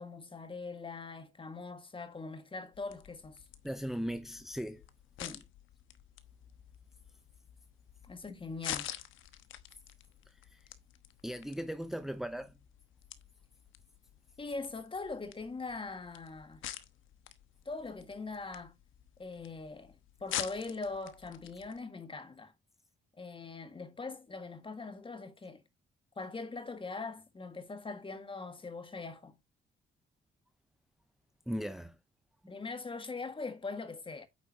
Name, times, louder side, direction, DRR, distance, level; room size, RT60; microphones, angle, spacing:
voice 1, 0.0-3.4 5.2-5.5 8.1-8.9 14.4-16.6 17.6-18.8 19.2-22.5 23.1-25.6 26.1-29.4 32.5-34.3, left 3 dB, 25° left, 1.7 m, -42 dB
sound 1, 2.7-21.8, left 12 dB, 85° left, 1.1 m, -47 dB
voice 2, 3.6-4.8 10.5-10.6 11.2-12.5 31.5-31.9, equal, ahead, 0.7 m, -37 dB
9.2 x 7.2 x 2.8 m
cardioid pair, 90°, 20 cm